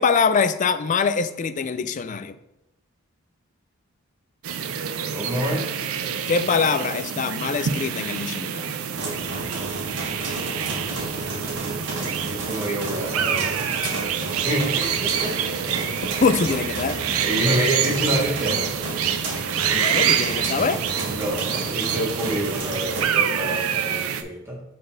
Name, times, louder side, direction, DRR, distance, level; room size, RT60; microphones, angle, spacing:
voice 1, 0.0-2.4 6.3-8.7 16.2-17.0 19.7-20.8, left 5 dB, 35° left, 12 dB, 0.3 m, -23 dB
sound 1, 4.4-24.2, right 8 dB, 80° right, 0.5 m, -27 dB
voice 2, 5.1-5.7 12.2-13.7 14.4-16.0 17.1-18.8 21.0-24.6, right 1 dB, 10° right, -3 dB, 1.4 m, -27 dB
sound 2, 8.9-23.0, right 2 dB, 55° right, 1.7 m, -32 dB
6.7 x 4.2 x 3.9 m, 0.91 s
head